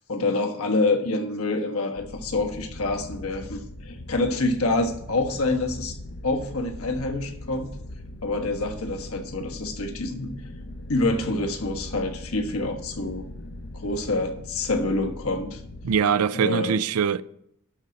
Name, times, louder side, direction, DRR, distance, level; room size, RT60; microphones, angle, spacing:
voice 1, 0.1-6.0 6.2-7.7 8.2-10.3 10.9-13.3 13.7-15.6 16.3-16.8, left 2 dB, 70° left, 1.3 m, -27 dB
sound 1, 2.0-15.9, left 1 dB, 50° left, 0.7 m, -40 dB
voice 2, 15.8-17.2, right 7 dB, 75° right, 0.4 m, -22 dB
11.5 x 4.1 x 7.5 m
head